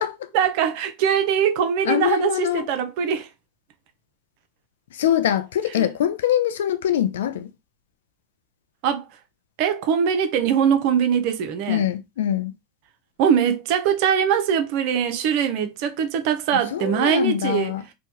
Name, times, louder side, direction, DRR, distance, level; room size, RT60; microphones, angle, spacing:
voice 1, 0.3-3.3 5.8-5.9 8.8-9.1 9.6-11.9 13.2-17.7, right 8 dB, 60° right, 0.6 m, -22 dB
voice 2, 1.9-2.7 4.9-7.5 11.7-12.5 16.7-17.8, left 10 dB, 80° left, 0.4 m, -23 dB
2.9 x 2.2 x 2.8 m
hypercardioid pair, 100°, 0 cm